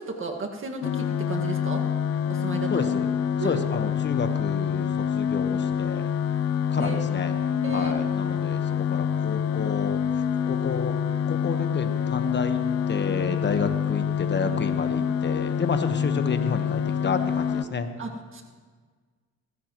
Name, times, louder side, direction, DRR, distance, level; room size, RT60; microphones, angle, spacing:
voice 1, 0.0-1.8 2.3-2.9 3.4-3.6 6.8-7.0 7.5-8.1 13.4-13.7 18.0-18.4, right 3 dB, 40° right, 2 dB, 1.9 m, -34 dB
sound 1, 0.8-17.6, left 8 dB, 55° left, 0.6 m, -26 dB
voice 2, 2.7-3.1 3.4-6.1 6.7-7.3 7.7-11.0 11.2-12.6 12.9-17.9, left 5 dB, 35° left, 8 dB, 1.3 m, -30 dB
19.0 x 15.5 x 3.1 m, 1.5 s
cardioid pair, 90°, 30 cm